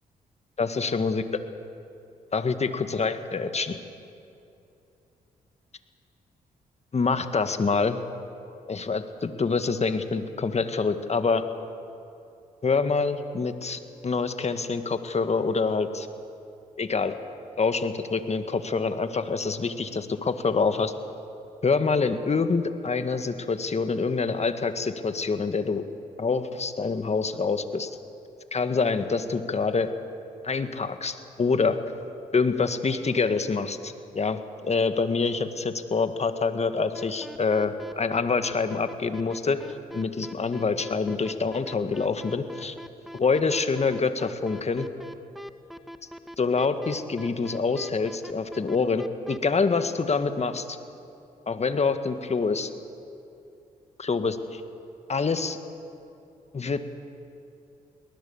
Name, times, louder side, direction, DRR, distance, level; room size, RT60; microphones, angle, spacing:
voice 1, 0.6-1.2 2.3-3.8 6.9-8.0 8.7-11.4 12.6-16.1 16.8-17.1 17.6-20.9 21.6-25.8 26.2-27.9 28.5-29.9 30.4-31.8 32.3-39.6 39.9-42.7 43.1-44.9 46.4-50.8 51.5-52.7 54.0-54.6 55.1-55.6 56.5-56.8, left 4 dB, 40° left, 9 dB, 1.7 m, -26 dB
sound 1, 36.9-49.4, equal, ahead, 1.4 m, -42 dB
22.5 x 19.0 x 7.2 m, 2.7 s
supercardioid pair, 50°, 17 cm